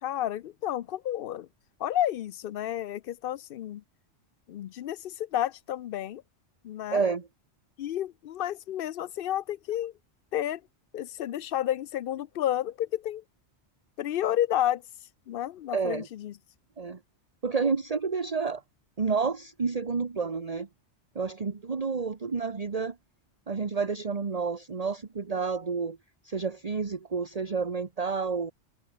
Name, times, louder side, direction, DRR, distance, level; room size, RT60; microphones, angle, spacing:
voice 1, 0.0-1.5 1.8-3.8 4.5-6.2 6.6-7.1 7.8-9.9 10.3-10.6 10.9-13.2 14.0-14.8 15.3-16.3, left 12 dB, 60° left, 0.7 m, -31 dB
voice 2, 6.9-7.3 15.7-16.1 16.8-17.0 17.4-18.6 19.0-20.7 21.1-23.0 23.5-26.0 26.2-28.5, right 5 dB, 35° right, 1.2 m, -30 dB
omnidirectional pair, 1.2 m